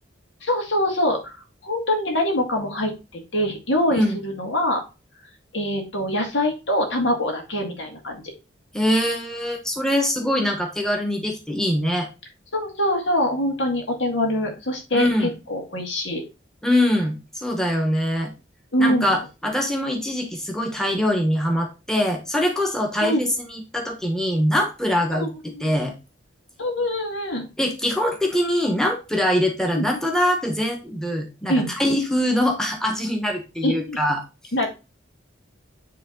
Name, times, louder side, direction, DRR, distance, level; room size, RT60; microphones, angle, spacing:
voice 1, 0.4-1.4 1.6-4.8 5.5-8.2 12.5-16.2 18.7-19.2 23.0-23.2 25.1-25.7 26.6-27.5 29.7-29.9 31.5-31.7 33.6-34.0 34.5-34.7, left 1 dB, 75° left, 2 dB, 2.1 m, -24 dB
voice 2, 3.9-4.2 8.7-12.1 14.9-15.3 16.6-18.3 18.8-25.3 25.6-25.9 27.6-34.2, equal, 5° left, 2 dB, 1.2 m, -23 dB
9.7 x 3.3 x 3.9 m, 0.29 s
head